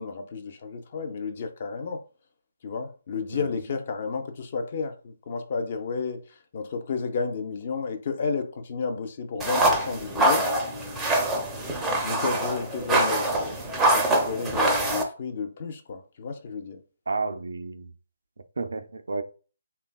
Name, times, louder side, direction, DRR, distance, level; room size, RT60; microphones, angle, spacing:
voice 1, 0.0-2.0 2.6-10.5 12.0-13.6 13.9-16.8, left 5 dB, 40° left, 0.5 m, -32 dB
sound 1, 9.4-15.0, right 1 dB, 10° right, 0.5 m, -24 dB
voice 2, 17.1-17.9 18.6-19.2, right 3 dB, 70° right, 0.3 m, -31 dB
3.2 x 2.3 x 2.2 m
figure-of-eight pair, 145°, 0 cm